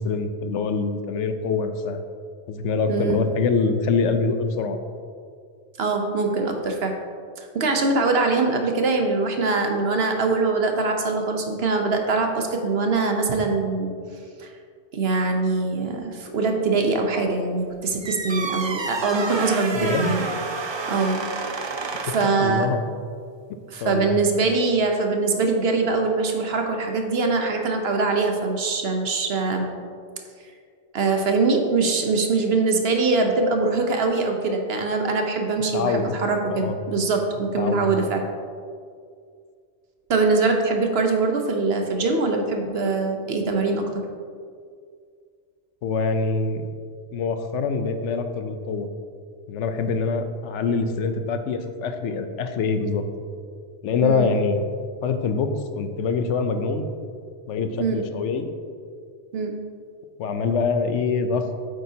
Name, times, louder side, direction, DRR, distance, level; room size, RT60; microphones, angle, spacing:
voice 1, 0.0-2.0 2.5-4.8 19.7-20.2 22.1-22.8 23.8-24.2 35.7-36.1 36.5-36.8 37.6-37.9 45.8-46.6 47.1-48.9 49.5-53.0 53.8-54.6 55.0-56.9 57.5-58.5 60.2-61.6, left 4 dB, 85° left, 8 dB, 1.0 m, -24 dB
voice 2, 2.9-3.2 5.8-6.9 7.4-13.9 14.4-14.5 14.9-20.3 20.9-21.7 22.0-22.7 23.7-29.7 30.9-38.2 40.1-43.9 54.0-54.3 57.8-58.1 59.3-59.5, right 3 dB, 65° right, 4 dB, 1.1 m, -23 dB
sound 1, 18.0-22.5, right 4 dB, 40° right, 0.4 m, -30 dB
8.7 x 7.9 x 2.8 m, 2.2 s
omnidirectional pair, 1.2 m